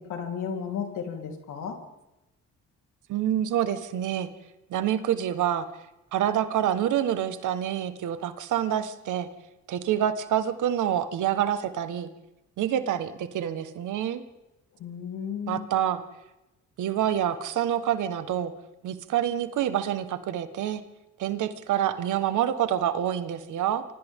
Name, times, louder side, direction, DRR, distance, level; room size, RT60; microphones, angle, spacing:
voice 1, 0.0-1.8 14.8-15.7, left 7 dB, 80° left, 2 dB, 3.9 m, -34 dB
voice 2, 3.1-4.3 4.7-5.7 6.1-9.3 9.7-12.1 12.6-14.2 15.5-16.0 16.8-18.5 18.8-20.8 21.2-23.8, right 10 dB, 80° right, 10 dB, 1.6 m, -27 dB
29.0 x 25.0 x 3.8 m, 0.97 s
cardioid pair, 90°, 30 cm